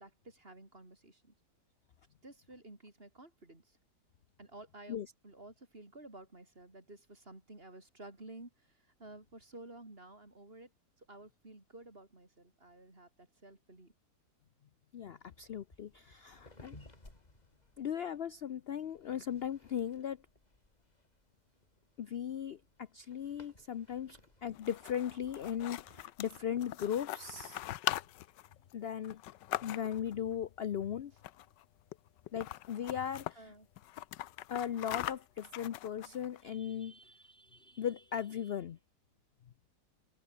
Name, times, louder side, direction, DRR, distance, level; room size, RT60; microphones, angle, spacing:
voice 1, 0.0-1.3 2.2-3.8 4.4-5.0 5.2-10.7 11.0-13.9 33.3-33.7, right 2 dB, 30° right, 4.6 m, -53 dB
voice 2, 14.9-16.8 17.8-20.2 22.0-27.6 28.7-29.2 29.6-31.1 32.3-33.4 34.5-38.8, left 9 dB, 65° left, 0.6 m, -38 dB
sound 1, 15.2-26.0, left 2 dB, 25° left, 3.7 m, -61 dB
sound 2, 24.5-30.1 31.2-31.6 31.9-32.0 32.3-33.3 33.8-36.4, left 14 dB, 85° left, 1.4 m, -41 dB
omnidirectional pair, 1.9 m